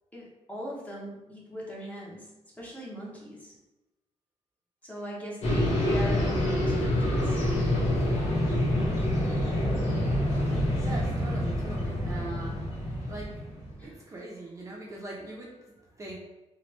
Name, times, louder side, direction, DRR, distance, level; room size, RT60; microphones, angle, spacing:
voice 1, 0.1-2.3 2.6-3.5 4.8-7.4 10.5-10.7 13.8-14.0, equal, 10° left, -5 dB, 0.7 m, -40 dB
sound 1, 5.4-13.7, left 1 dB, 65° left, 1.0 m, -27 dB
voice 2, 10.8-16.2, right 2 dB, 25° right, -3 dB, 0.5 m, -42 dB
3.0 x 2.2 x 3.0 m, 1.0 s
wide cardioid pair, 145°, 12 cm